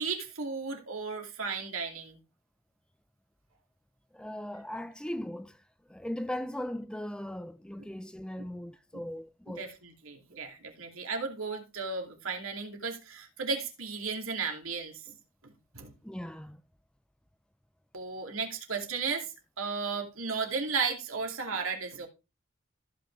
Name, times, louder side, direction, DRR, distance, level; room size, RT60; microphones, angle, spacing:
voice 1, 0.0-2.2 7.8-7.9 8.4-8.5 8.9-9.0 9.5-15.1 15.4-15.9 17.9-22.1, right 5 dB, 75° right, 2.6 m, -35 dB
voice 2, 4.1-5.6 5.9-9.7 16.0-16.6, left 1 dB, 5° left, 0.4 m, -38 dB
15.0 x 5.9 x 3.2 m
head